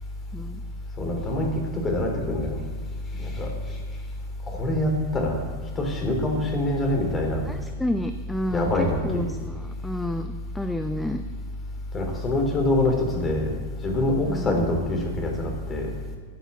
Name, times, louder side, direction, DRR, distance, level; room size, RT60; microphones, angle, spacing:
voice 1, 0.3-0.6 7.4-11.2 14.2-14.6, left 1 dB, 5° left, 7 dB, 0.6 m, -30 dB
voice 2, 1.0-2.6 3.1-3.8 4.5-5.4 5.8-7.4 8.5-9.3 11.9-13.5 13.8-15.9, left 1 dB, 20° left, 1 dB, 3.6 m, -25 dB
13.5 x 8.0 x 7.2 m, 1.5 s
figure-of-eight pair, 90°, 0 cm